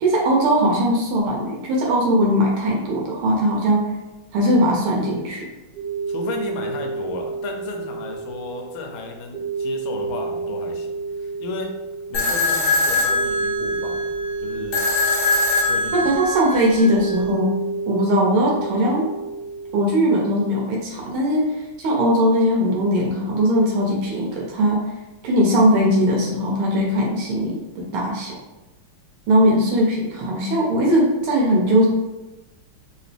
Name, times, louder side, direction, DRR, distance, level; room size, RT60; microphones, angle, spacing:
voice 1, 0.0-3.8 4.3-5.5 15.9-17.5 17.9-19.1 19.7-24.8 25.2-28.4 29.3-31.9, equal, 80° right, -2 dB, 1.6 m, -19 dB
sound 1, 5.7-19.9, right 4 dB, 55° right, 1.2 m, -30 dB
voice 2, 6.1-10.9 11.2-11.7 12.1-14.8 15.7-16.1, left 3 dB, 80° left, 3 dB, 1.4 m, -34 dB
sound 2, 12.1-17.2, left 2 dB, 55° left, 0.8 m, -22 dB
3.9 x 2.9 x 3.2 m, 1.0 s
omnidirectional pair, 2.4 m